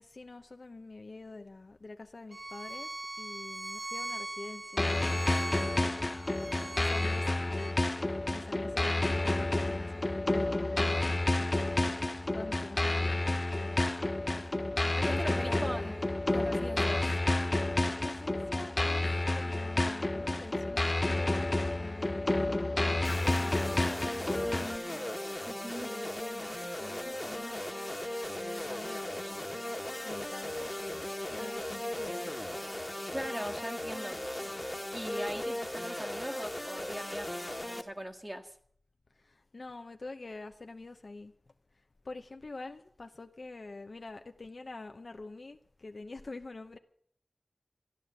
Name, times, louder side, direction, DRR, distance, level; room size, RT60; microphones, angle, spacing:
voice 1, 0.0-5.9 6.7-7.8 8.3-11.0 11.4-11.9 12.3-13.8 14.4-14.5 14.9-16.1 17.8-25.1 25.7-27.7 28.2-29.5 30.0-32.3 39.1-41.3 42.0-46.8, left 3 dB, 65° left, 0.8 m, -46 dB
Bowed string instrument, 2.3-7.7, right 2 dB, 40° right, 0.9 m, -41 dB
sound 1, 4.8-24.8, left 2 dB, 35° left, 0.6 m, -30 dB
voice 2, 15.0-17.0 24.3-25.2 25.5-25.9 33.1-34.2 34.9-37.3 37.8-38.5, equal, 20° right, 1.8 m, -40 dB
sound 2, 23.0-37.8, left 1 dB, 20° left, 1.5 m, -37 dB
14.0 x 10.5 x 8.0 m
wide cardioid pair, 50°, 0 cm